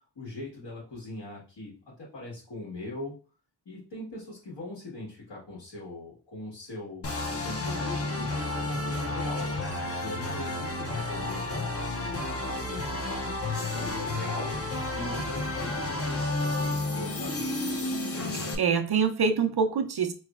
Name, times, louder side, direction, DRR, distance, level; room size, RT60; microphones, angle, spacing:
voice 1, 0.1-1.7 2.0-3.1 3.6-9.5 10.0-14.5 14.9-17.4, left 2 dB, 80° left, 1.5 m, -41 dB
sound 1, 7.0-18.6, left 2 dB, 35° left, 0.6 m, -31 dB
voice 2, 18.3-20.1, right 6 dB, 65° right, 0.6 m, -25 dB
4.0 x 3.1 x 2.4 m
wide cardioid pair, 75°, 41 cm